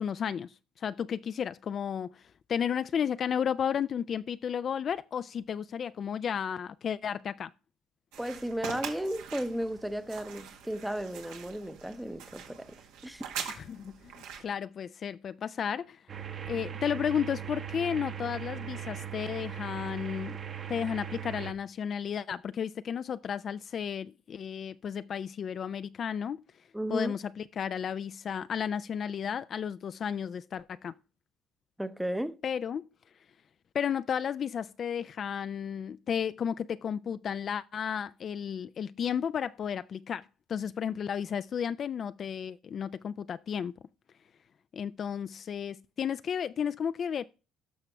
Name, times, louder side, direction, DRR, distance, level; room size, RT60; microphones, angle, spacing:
voice 1, 0.0-7.5 13.5-16.0 16.5-20.4 20.7-26.4 26.9-30.9 32.4-32.9 33.7-43.7 44.7-47.2, left 8 dB, 45° left, 0.3 m, -33 dB
sound 1, 8.1-14.4, right 7 dB, 85° right, 1.8 m, -43 dB
voice 2, 8.2-12.8 13.0-13.3 26.7-27.1 31.8-32.4, equal, 5° right, 0.7 m, -34 dB
sound 2, 16.1-21.5, right 9 dB, 40° right, 1.0 m, -39 dB
12.0 x 6.0 x 3.3 m
cardioid pair, 115°, 0 cm